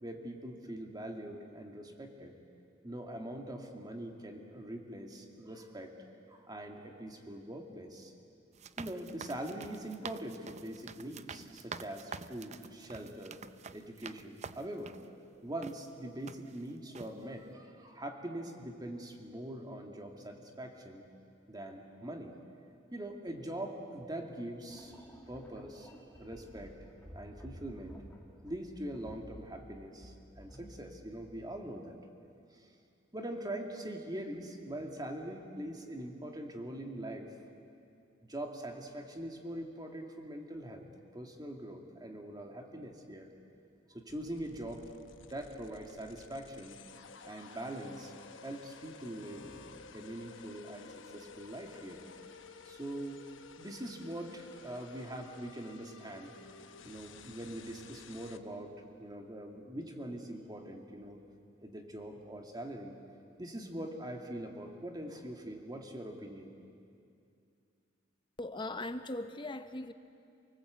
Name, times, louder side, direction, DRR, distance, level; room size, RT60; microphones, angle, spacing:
voice 1, 0.0-2.3 2.8-8.1 8.8-13.4 13.7-15.0 15.4-21.1 21.5-22.3 22.9-25.0 25.3-26.8 27.1-28.0 28.4-31.9 32.5-32.7 33.1-37.3 38.2-40.9 41.1-43.3 43.9-44.9 45.2-46.8 47.2-48.1 48.4-49.7 49.9-52.0 52.7-53.2 53.6-56.3 56.8-58.7 59.0-61.2 61.6-63.0 63.4-66.5, right 1 dB, 20° right, 3 dB, 2.2 m, -43 dB
sound 1, 8.5-15.1 15.6-15.8 16.3-16.6 16.9-17.1, right 5 dB, 35° right, 0.6 m, -47 dB
sound 2, 24.7-31.6, equal, 10° left, 2.1 m, -53 dB
sound 3, 44.1-58.4, left 5 dB, 70° left, 1.0 m, -53 dB
voice 2, 68.4-69.9, left 2 dB, 25° left, 9 dB, 0.9 m, -39 dB
28.5 x 19.0 x 8.2 m, 2.5 s
head